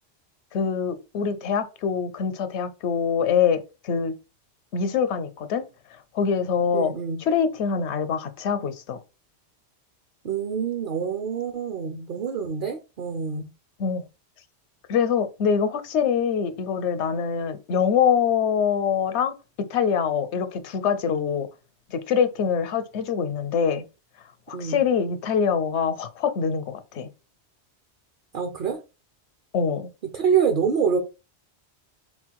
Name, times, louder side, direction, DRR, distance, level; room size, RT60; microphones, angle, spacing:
voice 1, 0.5-4.1 4.7-5.6 6.1-6.9 7.2-9.0 13.8-14.0 14.9-19.3 19.7-21.5 21.9-23.8 24.5-27.1 29.5-29.9, left 7 dB, 80° left, 0.9 m, -24 dB
voice 2, 6.7-7.2 10.2-13.5 24.5-24.8 28.3-28.8 30.1-31.0, right 6 dB, 55° right, 0.8 m, -26 dB
4.2 x 2.2 x 4.5 m
omnidirectional pair, 1.1 m